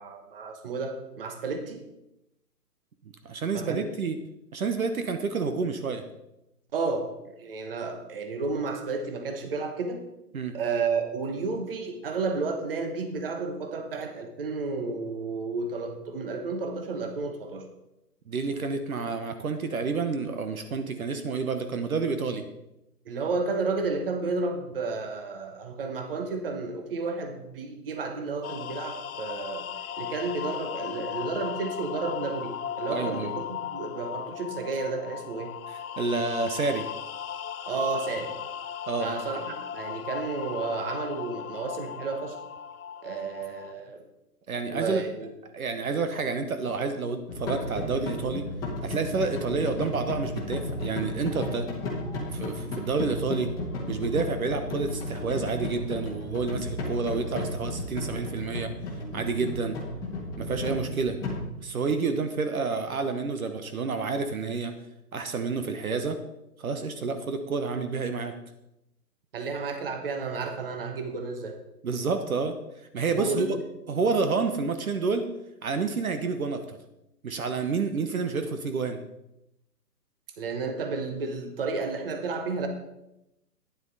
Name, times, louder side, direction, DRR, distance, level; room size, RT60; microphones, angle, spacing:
voice 1, 0.0-1.8 3.5-3.9 6.7-7.1 7.4-10.0 10.5-17.6 23.0-29.7 30.0-35.5 37.7-38.3 39.0-42.4 43.0-44.0 44.7-45.3 69.3-71.6 73.1-73.6 80.4-82.7, right 4 dB, 35° right, 6 dB, 1.2 m, -32 dB
voice 2, 3.2-4.2 4.5-6.0 10.3-10.6 18.3-22.5 32.9-33.3 35.7-36.9 38.9-39.1 44.5-45.0 45.5-48.5 48.8-51.7 52.3-53.5 53.9-58.7 59.1-59.8 60.4-61.2 61.6-64.8 65.1-66.2 66.6-68.4 71.8-72.6 72.9-73.6 73.9-75.3 75.6-76.8 77.2-79.0, right 4 dB, 60° right, 9 dB, 1.2 m, -29 dB
sound 1, 28.4-43.7, left 9 dB, 60° left, 0.6 m, -37 dB
sound 2, 47.3-61.5, left 1 dB, 5° left, 1.4 m, -34 dB
12.0 x 9.9 x 4.1 m, 0.88 s
hypercardioid pair, 160°, 48 cm